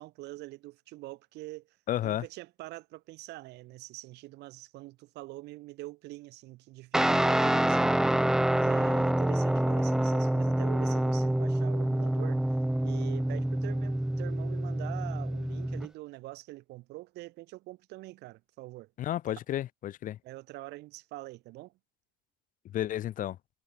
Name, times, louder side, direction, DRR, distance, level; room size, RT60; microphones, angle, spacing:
voice 1, 0.0-1.8 2.0-12.4 12.8-18.9 20.2-21.7, right 19 dB, 85° right, 4.6 m, -45 dB
voice 2, 1.9-2.2 19.0-20.2 22.7-23.4, left 12 dB, 50° left, 0.6 m, -32 dB
Guitar, 6.9-15.9, right 1 dB, 5° right, 0.3 m, -27 dB
cardioid pair, 110°, 17 cm